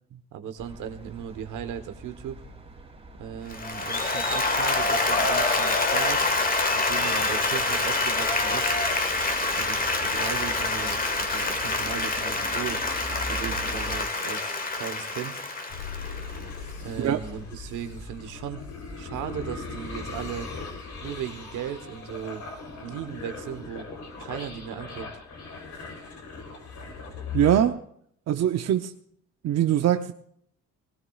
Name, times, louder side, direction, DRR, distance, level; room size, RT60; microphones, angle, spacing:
voice 1, 0.3-2.4 3.2-6.3 6.7-8.8 9.6-12.8 13.3-15.4 16.8-18.6 19.0-20.5 21.0-22.4 22.8-23.9 24.2-25.1, right 9 dB, 85° right, 1.3 m, -37 dB
sound 1, 0.6-14.0, right 2 dB, 20° right, 2.7 m, -43 dB
Applause, 3.5-16.7, left 3 dB, 30° left, 1.7 m, -26 dB
sound 2, 15.7-27.7, left 4 dB, 70° left, 3.6 m, -39 dB
voice 2, 27.3-27.8 28.3-28.9 29.4-30.1, right 10 dB, 60° right, 0.7 m, -22 dB
19.0 x 18.5 x 2.4 m
cardioid pair, 90°, 30 cm